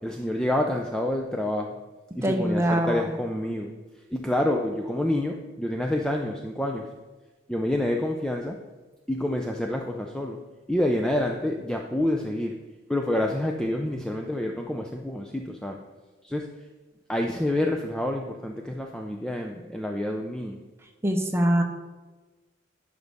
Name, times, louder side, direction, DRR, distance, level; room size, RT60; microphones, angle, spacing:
voice 1, 0.0-1.7 2.2-3.7 4.1-6.9 7.5-8.6 9.1-10.4 10.7-12.6 12.9-15.8 16.2-16.5 17.1-20.6, left 1 dB, 5° left, 2 dB, 0.4 m, -28 dB
voice 2, 2.2-3.0 21.0-21.6, right 1 dB, 15° right, 4 dB, 0.7 m, -23 dB
10.5 x 5.2 x 3.5 m, 1.2 s
head